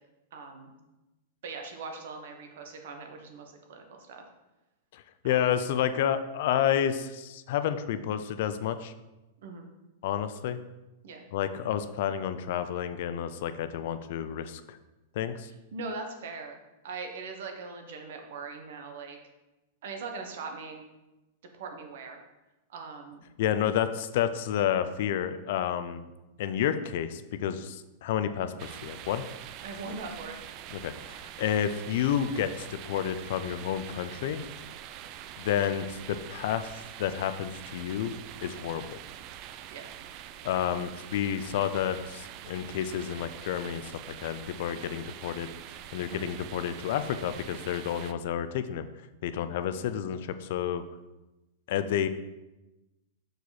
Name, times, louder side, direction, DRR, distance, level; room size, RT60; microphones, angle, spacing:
voice 1, 0.3-0.7 1.4-4.2 5.2-5.4 9.4-9.7 11.0-11.2 15.7-19.2 19.8-20.8 21.5-22.2 22.7-23.2 29.6-30.3 39.7-39.9 46.1-46.3, right 4 dB, 70° right, 4 dB, 1.2 m, -41 dB
voice 2, 4.9-8.9 10.0-10.6 11.3-14.8 15.2-15.5 23.4-26.1 26.4-29.2 30.7-34.4 35.4-38.1 38.4-39.0 40.4-43.9 44.2-45.5 45.9-48.9 49.2-50.8 51.7-52.1, left 9 dB, 60° left, 11 dB, 0.5 m, -30 dB
sound 1, 28.6-48.1, right 11 dB, 40° right, 0.4 m, -45 dB
6.5 x 4.7 x 4.1 m, 1.0 s
hypercardioid pair, 140°, 0 cm